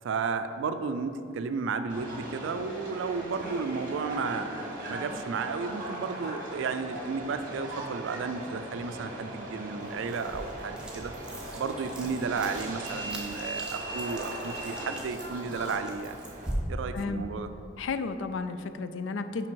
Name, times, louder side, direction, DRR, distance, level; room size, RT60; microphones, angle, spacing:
voice 1, 0.0-4.5 4.9-11.1 11.5-16.2 16.7-17.5, right 5 dB, 80° right, 9 dB, 0.4 m, -33 dB
Subway metro underground, 1.9-16.5, right 1 dB, 45° right, 1.2 m, -39 dB
sound 1, 9.8-16.5, right 1 dB, 5° right, 0.7 m, -44 dB
voice 2, 17.8-19.5, left 4 dB, 80° left, 10 dB, 0.4 m, -32 dB
6.0 x 5.1 x 4.6 m, 2.6 s
head